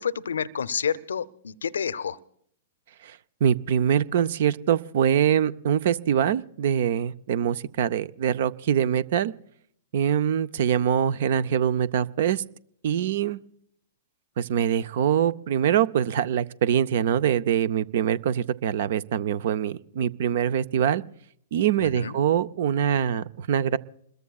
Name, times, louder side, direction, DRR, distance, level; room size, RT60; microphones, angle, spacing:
voice 1, 0.0-2.2 21.8-22.2, left 7 dB, 75° left, 17 dB, 0.6 m, -29 dB
voice 2, 3.0-9.3 9.9-12.4 12.8-13.4 14.4-21.0 21.5-23.8, right 9 dB, 60° right, 16 dB, 0.6 m, -24 dB
27.5 x 21.5 x 2.4 m, 0.68 s
figure-of-eight pair, 110°, 0 cm